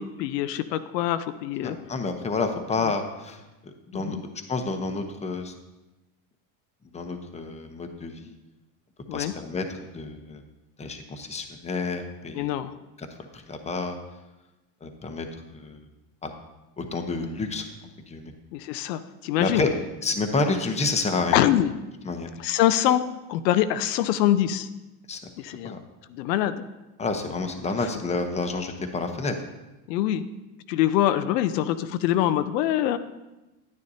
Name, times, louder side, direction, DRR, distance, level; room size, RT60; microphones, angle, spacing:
voice 1, 0.0-1.8 2.8-2.9 3.9-4.2 9.1-9.3 12.3-12.7 18.5-19.6 21.3-21.7 22.4-23.0 23.3-24.7 25.4-25.8 26.1-26.6 29.9-30.2 30.7-33.0, left 12 dB, 85° left, 11 dB, 0.6 m, -24 dB
voice 2, 1.6-5.5 6.9-8.3 9.1-10.4 10.8-12.5 13.0-13.1 13.3-14.0 14.8-15.8 16.2-16.3 16.8-17.7 18.1-18.3 19.4-19.7 20.0-21.4 22.1-22.3 25.1-25.3 25.6-25.8 27.0-29.3, left 3 dB, 15° left, 5 dB, 0.8 m, -29 dB
10.0 x 9.7 x 2.8 m, 1.0 s
supercardioid pair, 105°, 48 cm